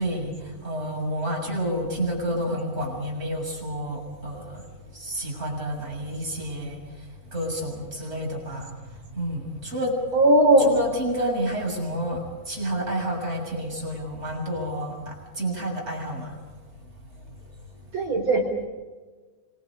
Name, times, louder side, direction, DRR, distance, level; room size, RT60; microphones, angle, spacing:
voice 1, 0.0-4.7 4.9-10.0 10.6-16.8 17.3-17.4, equal, 15° right, 0 dB, 6.8 m, -30 dB
voice 2, 10.1-10.7 17.9-18.7, right 1 dB, 35° right, 3 dB, 4.8 m, -18 dB
26.5 x 22.5 x 5.1 m, 1.4 s
omnidirectional pair, 4.0 m